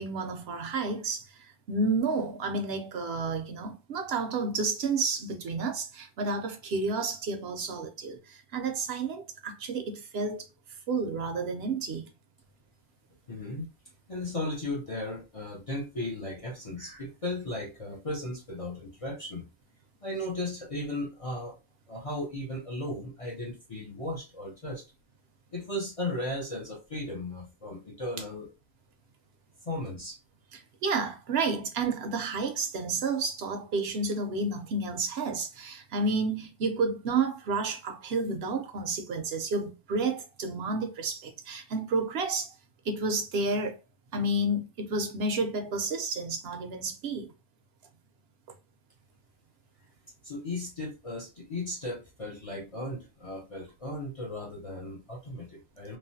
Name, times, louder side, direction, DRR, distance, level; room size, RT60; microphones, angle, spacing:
voice 1, 0.0-10.5 10.9-12.1 30.5-42.5 42.8-43.8 44.1-47.3, right 3 dB, 65° right, 0.8 m, -31 dB
voice 2, 13.3-13.7 14.1-19.5 20.0-21.6 21.9-24.8 25.5-28.5 29.6-30.2 50.2-56.0, left 1 dB, 40° left, 0.5 m, -36 dB
3.1 x 2.1 x 2.6 m
omnidirectional pair, 1.2 m